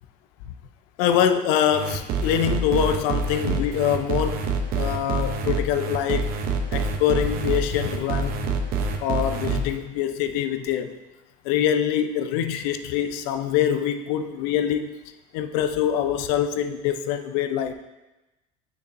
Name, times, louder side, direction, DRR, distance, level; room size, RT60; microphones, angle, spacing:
voice 1, 1.0-4.5 4.7-6.3 6.7-8.5 9.0-10.9 11.4-14.9 15.3-17.7, left 9 dB, 80° left, 9 dB, 0.5 m, -24 dB
sound 1, 1.7-9.6, right 4 dB, 60° right, 0.8 m, -26 dB
6.6 x 5.9 x 2.6 m, 1.0 s
supercardioid pair, 95°, 17 cm